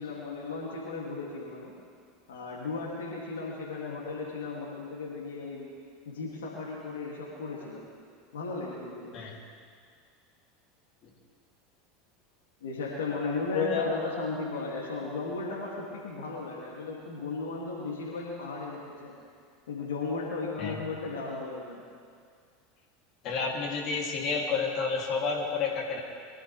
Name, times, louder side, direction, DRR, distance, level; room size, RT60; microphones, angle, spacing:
voice 1, 0.0-1.8 2.3-5.7 6.0-7.8 8.3-9.1 12.6-19.1 19.7-21.8, left 3 dB, 70° left, -4 dB, 2.7 m, -35 dB
voice 2, 13.5-14.0 20.6-20.8 23.2-26.0, left 5 dB, 45° left, -2 dB, 3.0 m, -30 dB
23.0 x 13.0 x 3.5 m, 2.2 s
figure-of-eight pair, 80°, 0 cm